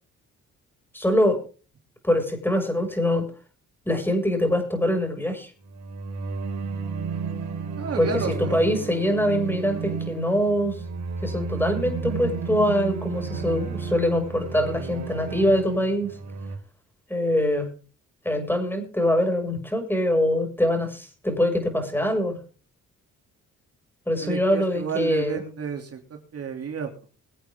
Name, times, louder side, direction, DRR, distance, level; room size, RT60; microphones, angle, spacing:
voice 1, 0.9-1.4 2.0-3.3 3.8-5.5 8.0-10.8 11.2-16.1 17.1-17.7 18.2-22.4 24.1-25.4, left 1 dB, 5° left, 5 dB, 6.6 m, -23 dB
sound 1, 5.6-16.6, right 5 dB, 65° right, 5.1 m, -32 dB
voice 2, 7.8-8.6 24.2-26.9, right 6 dB, 50° right, 3 dB, 3.2 m, -31 dB
24.0 x 8.6 x 3.8 m, 0.37 s
cardioid pair, 90°, 30 cm